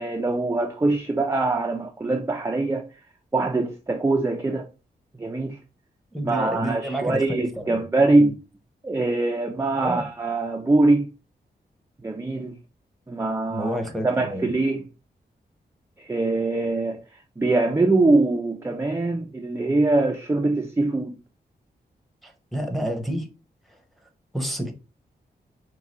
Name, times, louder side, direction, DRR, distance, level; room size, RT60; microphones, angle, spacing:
voice 1, 0.0-2.8 3.3-4.7 5.2-5.6 6.2-8.4 8.8-11.1 12.0-12.6 13.1-14.9 16.0-17.0 17.4-21.2, right 2 dB, 15° right, 0.5 m, -23 dB
voice 2, 6.1-7.8 8.2-8.3 9.8-10.0 13.5-14.5 22.5-23.3 24.3-24.7, equal, ahead, 1.0 m, -29 dB
4.8 x 2.3 x 4.1 m
wide cardioid pair, 95°, 17 cm